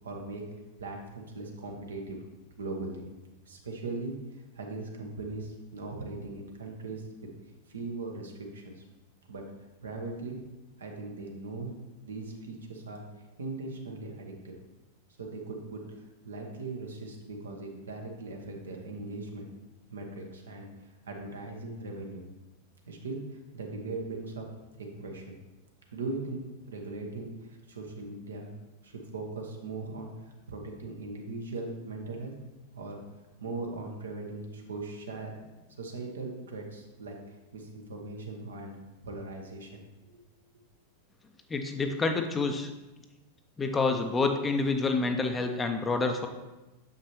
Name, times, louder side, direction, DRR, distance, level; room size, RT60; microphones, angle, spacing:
voice 1, 0.0-0.5 0.8-2.2 2.6-3.0 3.5-7.3 7.7-8.8 9.3-9.5 9.8-10.4 10.8-11.8 12.0-13.0 13.4-14.5 15.2-15.8 16.2-19.5 19.9-22.2 22.8-24.5 24.8-25.4 25.9-28.5 28.8-32.3 32.7-33.0 33.4-35.4 35.8-38.8 39.0-39.8, right 3 dB, 70° right, 2 dB, 1.0 m, -39 dB
voice 2, 41.5-42.7 43.6-46.3, left 3 dB, 15° left, 5 dB, 0.5 m, -28 dB
6.6 x 5.4 x 3.0 m, 1.1 s
figure-of-eight pair, 90°, 0 cm